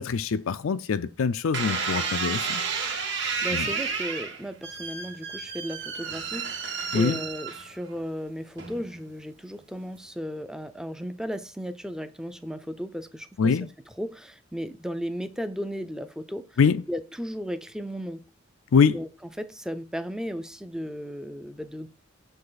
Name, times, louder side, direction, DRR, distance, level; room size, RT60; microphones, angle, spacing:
voice 1, 0.0-2.6 3.5-3.6 6.9-7.2 13.4-13.7 16.6-16.8 18.7-19.0, left 5 dB, 80° left, 0.4 m, -23 dB
sound 1, 1.5-7.9 8.6-9.0, right 5 dB, 60° right, 1.8 m, -31 dB
voice 2, 3.4-13.6 13.9-16.6 16.9-18.2 18.9-19.1 19.4-21.9, equal, 5° right, 0.5 m, -35 dB
6.6 x 5.4 x 3.9 m
head